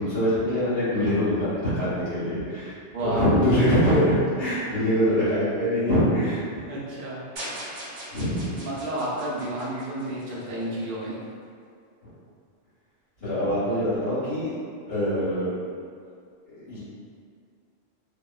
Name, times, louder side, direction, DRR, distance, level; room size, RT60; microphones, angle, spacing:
voice 1, 0.0-6.6 8.1-8.6 13.2-14.5 14.8-15.6 16.5-16.8, equal, 70° left, -12 dB, 1.5 m, -24 dB
voice 2, 2.9-3.5 6.7-7.2 8.6-11.2 14.2-14.4, right 1 dB, 55° right, -8 dB, 0.8 m, -31 dB
sound 1, 7.4-10.6, right 1 dB, 70° right, 1.0 m, -39 dB
2.9 x 2.2 x 2.3 m, 2.3 s
omnidirectional pair, 1.3 m